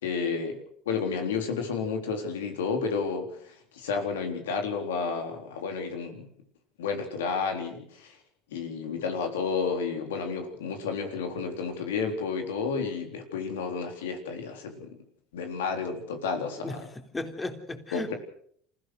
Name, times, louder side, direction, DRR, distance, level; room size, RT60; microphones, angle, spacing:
voice 1, 0.0-0.6 0.9-6.3 6.8-8.2 8.5-15.0 15.3-16.8 17.9-18.1, left 5 dB, 85° left, 5 dB, 3.8 m, -31 dB
voice 2, 16.6-18.1, left 2 dB, 20° left, 6 dB, 3.6 m, -36 dB
27.5 x 16.0 x 6.5 m, 0.63 s
hypercardioid pair, 80°, 0 cm